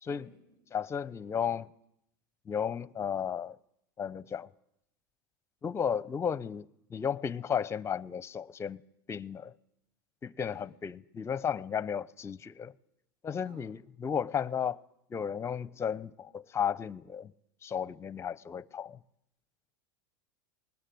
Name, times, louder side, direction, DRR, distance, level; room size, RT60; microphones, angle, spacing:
voice 1, 0.0-0.6 10.5-10.7 13.4-13.7, right 1 dB, 80° right, 6.7 m, -58 dB
voice 2, 0.7-1.7 2.5-3.6 4.0-4.5 5.6-8.8 9.1-9.5 10.2-12.7 13.2-14.8 15.1-17.3 17.6-19.0, left 7 dB, 25° left, 0.7 m, -34 dB
20.0 x 19.5 x 7.8 m
hypercardioid pair, 95°, 12 cm